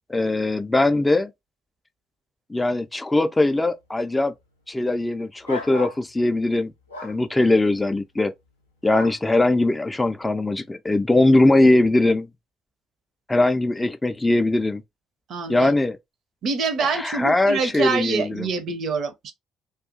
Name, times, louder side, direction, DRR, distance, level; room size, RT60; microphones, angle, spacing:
voice 1, 0.1-1.3 2.5-4.3 4.7-6.7 7.0-8.3 8.8-12.3 13.3-14.8 15.5-16.0 16.8-18.5, left 2 dB, 15° left, 0.3 m, -20 dB
sound 1, 5.4-6.0 6.9-7.2 8.9-9.2, left 3 dB, 85° left, 0.5 m, -33 dB
voice 2, 15.3-15.7 16.4-19.3, right 4 dB, 50° right, 0.5 m, -26 dB
2.3 x 2.3 x 2.5 m
figure-of-eight pair, 50°, 0 cm